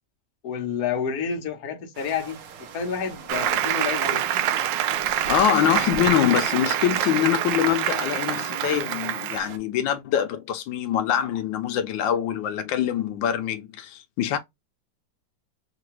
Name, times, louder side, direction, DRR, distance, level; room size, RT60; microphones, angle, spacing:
voice 1, 0.4-2.4 2.7-4.2, left 6 dB, 55° left, 1.4 m, -29 dB
sound 1, 1.9-9.6, right 6 dB, 60° right, 1.0 m, -42 dB
Applause, 3.3-9.4, right 11 dB, 80° right, 1.2 m, -26 dB
voice 2, 5.3-14.4, left 10 dB, 85° left, 1.3 m, -24 dB
5.8 x 2.2 x 3.1 m
omnidirectional pair, 2.0 m